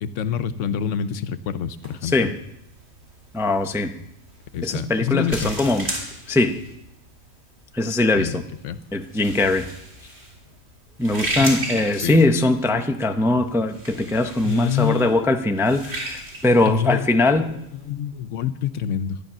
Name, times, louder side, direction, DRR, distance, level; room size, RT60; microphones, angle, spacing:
voice 1, 0.0-2.3 4.5-5.5 8.1-8.8 11.9-12.2 14.4-15.3 16.7-17.1 17.4-17.6 17.9-19.2, left 9 dB, 80° left, 13 dB, 1.0 m, -26 dB
sound 1, 1.7-17.9, right 1 dB, 45° right, 2.6 m, -35 dB
voice 2, 2.0-2.4 3.3-4.0 4.6-5.9 6.3-6.6 7.7-8.4 8.9-9.7 11.0-17.5, left 2 dB, 5° right, 5 dB, 0.4 m, -21 dB
11.5 x 10.5 x 6.0 m, 0.82 s
omnidirectional pair, 1.3 m